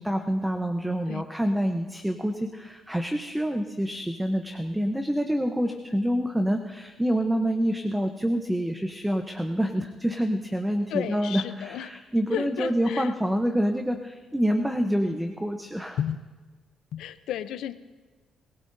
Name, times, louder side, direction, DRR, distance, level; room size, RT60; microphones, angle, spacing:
voice 1, 0.0-16.0, equal, 5° right, 5 dB, 0.8 m, -27 dB
voice 2, 10.9-11.9 12.3-13.1 16.0-16.2 16.9-17.7, left 10 dB, 85° left, 12 dB, 0.6 m, -32 dB
27.0 x 16.5 x 2.7 m, 1.4 s
cardioid pair, 90°, 0 cm